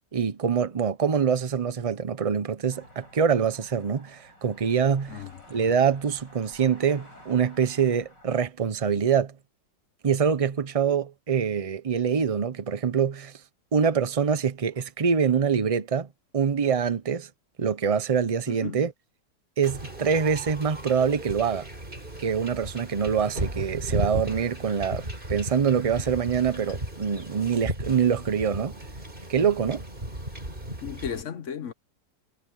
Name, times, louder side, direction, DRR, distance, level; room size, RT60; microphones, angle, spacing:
voice 1, 0.1-5.2 5.5-9.3 10.0-13.3 13.7-16.1 16.3-17.3 17.6-18.9 19.6-21.7 22.2-28.8 29.3-29.8, right 7 dB, 50° right, 0.4 m, -25 dB
sound 1, 2.7-8.5, left 1 dB, 80° left, 8.8 m, -52 dB
voice 2, 18.5-18.8 30.8-31.7, left 8 dB, 50° left, 1.1 m, -35 dB
Wind / Ocean / Boat Water vehicle, 19.6-31.2, right 1 dB, 30° right, 4.8 m, -35 dB
omnidirectional pair, 1.9 m